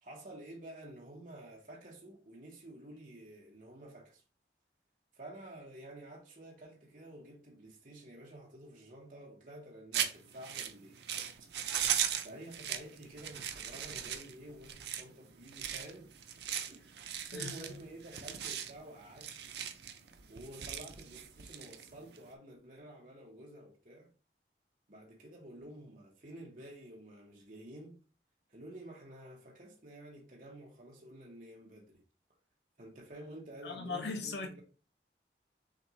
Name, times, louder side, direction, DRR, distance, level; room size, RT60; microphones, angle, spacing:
voice 1, 0.0-4.2 5.1-11.0 12.2-16.1 16.7-16.9 17.3-19.3 20.3-24.1 24.9-28.0 28.5-32.0 32.8-34.6, right 1 dB, 45° right, 1.4 m, -50 dB
sound 1, 9.9-22.3, right 9 dB, 75° right, 0.6 m, -38 dB
voice 2, 33.6-34.6, left 3 dB, 85° left, 0.8 m, -39 dB
6.5 x 2.7 x 3.1 m
head